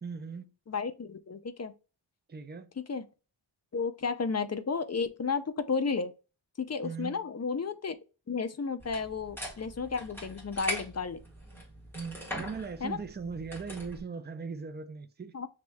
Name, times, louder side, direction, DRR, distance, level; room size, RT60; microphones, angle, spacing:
voice 1, 0.0-0.5 2.3-2.7 6.8-7.2 11.9-15.3, right 5 dB, 25° right, 0.5 m, -39 dB
voice 2, 0.7-1.7 2.8-3.0 3.7-6.1 6.6-8.0 8.3-11.2 12.8-13.0 15.3-15.5, left 5 dB, 35° left, 0.5 m, -32 dB
sound 1, 8.8-14.0, equal, 5° left, 1.6 m, -41 dB
5.9 x 3.1 x 2.2 m
wide cardioid pair, 65°, 46 cm